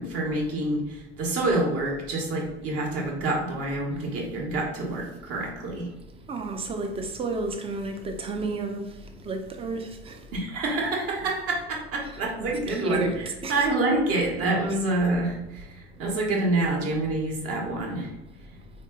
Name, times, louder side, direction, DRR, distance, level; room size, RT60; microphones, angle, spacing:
voice 1, 0.0-5.9 10.3-15.7 16.0-18.1, right 2 dB, 45° right, 1.1 m, -27 dB
voice 2, 6.3-8.9 9.2-10.2 12.0-12.1 12.4-13.7, right 3 dB, 15° right, 0.5 m, -31 dB
3.7 x 2.6 x 2.3 m
figure-of-eight pair, 70°, 34 cm